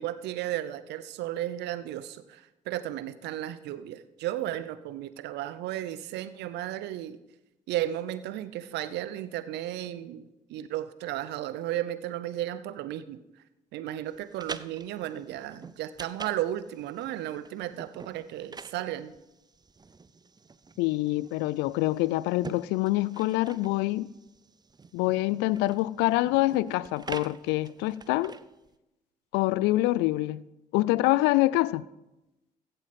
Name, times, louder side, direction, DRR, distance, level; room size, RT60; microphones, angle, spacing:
voice 1, 0.0-7.2 7.7-13.2 13.7-19.1, right 13 dB, 70° right, 0.7 m, -34 dB
sound 1, 14.1-28.7, right 4 dB, 20° right, 0.6 m, -46 dB
voice 2, 20.8-24.1 24.9-28.3 29.3-30.4 30.7-31.9, left 18 dB, 75° left, 0.4 m, -25 dB
15.5 x 8.0 x 4.2 m
hypercardioid pair, 45°, 18 cm